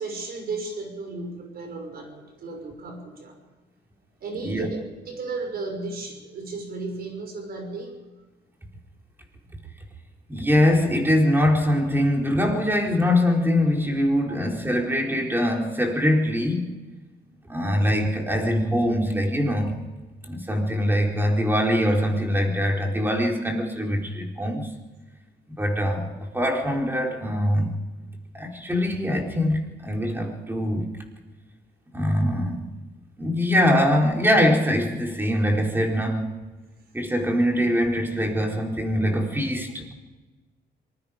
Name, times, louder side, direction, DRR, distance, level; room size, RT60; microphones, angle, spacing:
voice 1, 0.0-3.4 4.2-8.0 14.3-14.4, right 3 dB, 60° right, 4 dB, 6.0 m, -34 dB
voice 2, 10.3-16.7 17.5-19.7 20.3-24.7 25.5-27.7 28.3-30.9 31.9-32.6 33.2-36.3 36.9-39.9, equal, 10° right, 1 dB, 4.3 m, -23 dB
26.0 x 20.5 x 5.2 m, 1.2 s
cardioid pair, 110°, 18 cm